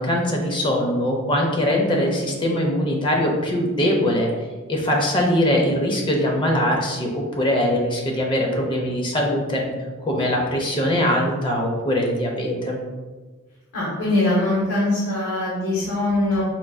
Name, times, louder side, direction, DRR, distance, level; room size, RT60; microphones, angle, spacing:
voice 1, 0.0-4.3 4.7-9.7 10.0-12.8, left 1 dB, 20° left, -1 dB, 0.5 m, -22 dB
voice 2, 13.7-16.4, left 1 dB, 75° left, -7 dB, 0.9 m, -22 dB
4.4 x 2.6 x 2.2 m, 1.3 s
head